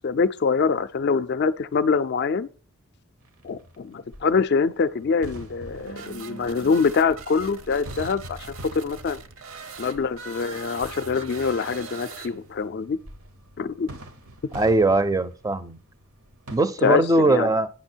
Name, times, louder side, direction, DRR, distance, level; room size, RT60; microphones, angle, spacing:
voice 1, 0.0-2.5 3.4-8.4 8.7-9.2 9.8-13.0 13.6-13.9 16.8-17.5, left 5 dB, 50° left, 0.3 m, -24 dB
sound 1, 3.2-16.6, equal, 85° right, 1.1 m, -45 dB
sound 2, 5.7-12.7, right 5 dB, 65° right, 0.8 m, -41 dB
voice 2, 14.5-15.8 16.5-17.7, right 2 dB, 15° right, 0.4 m, -20 dB
9.7 x 6.0 x 4.4 m
head